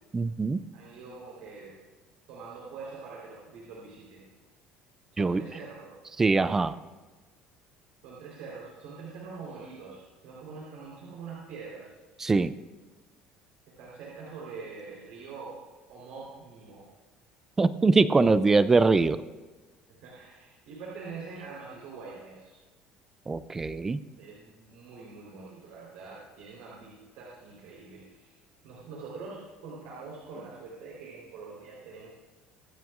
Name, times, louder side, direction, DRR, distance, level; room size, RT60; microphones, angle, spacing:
voice 1, 0.1-0.6 5.2-5.4 6.2-6.8 12.2-12.5 17.6-19.2 23.3-24.0, right 3 dB, 15° right, 14 dB, 0.4 m, -23 dB
voice 2, 0.7-1.8 2.3-4.3 5.1-5.9 8.0-11.9 13.7-16.9 19.9-22.6 24.2-28.3 28.6-32.1, right 4 dB, 80° right, -5 dB, 3.9 m, -44 dB
23.5 x 9.0 x 2.5 m, 1.3 s
cardioid pair, 160°, 3 cm